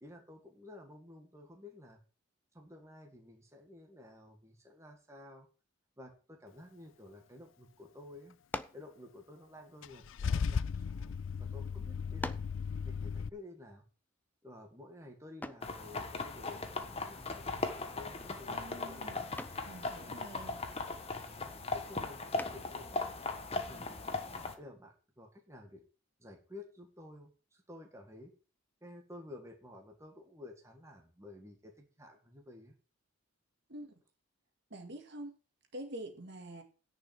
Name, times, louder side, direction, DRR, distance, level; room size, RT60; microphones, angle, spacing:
voice 1, 0.0-2.0 2.5-5.5 6.0-8.4 8.7-12.3 12.9-13.8 14.4-19.3 19.9-20.8 21.4-23.0 23.7-24.2 24.6-25.8 26.2-28.3 28.8-32.7, left 2 dB, 15° right, 1.9 m, -52 dB
sound 1, 8.5-8.9 9.8-11.0 11.7-11.8 12.2-12.6 15.4-15.8 17.7-18.0 18.4-18.8 19.4-19.7 22.4-22.8, left 2 dB, 10° left, 0.5 m, -43 dB
Car / Engine starting / Idling, 9.8-13.3, left 6 dB, 65° left, 0.4 m, -36 dB
sound 2, 15.6-24.5, left 3 dB, 30° left, 1.3 m, -38 dB
voice 2, 18.5-19.3 19.7-20.7 33.7-34.0 34.7-35.4 35.7-36.6, right 1 dB, 55° right, 2.0 m, -46 dB
10.5 x 5.4 x 7.5 m
head